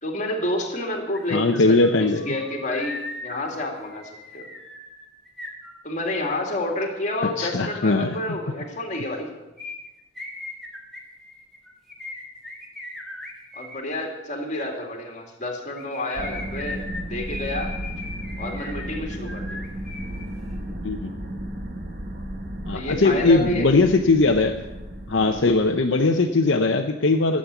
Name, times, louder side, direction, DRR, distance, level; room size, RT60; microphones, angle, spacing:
voice 1, 0.0-4.5 5.8-9.3 13.6-16.8 17.1-17.7 18.4-19.5 22.7-23.7 25.2-25.4, left 1 dB, 35° left, 1 dB, 2.3 m, -29 dB
sound 1, 1.1-1.2 1.5-6.3 9.6-13.8 15.6-20.2 20.5-20.6, left 2 dB, ahead, 1.7 m, -38 dB
voice 2, 1.3-2.3 7.4-8.1 20.8-21.1 22.7-24.6 25.1-27.4, left 3 dB, 65° left, 3 dB, 0.7 m, -20 dB
sound 2, 16.1-26.1, right 1 dB, 45° right, 1.5 m, -34 dB
12.5 x 7.5 x 8.2 m, 1.0 s
head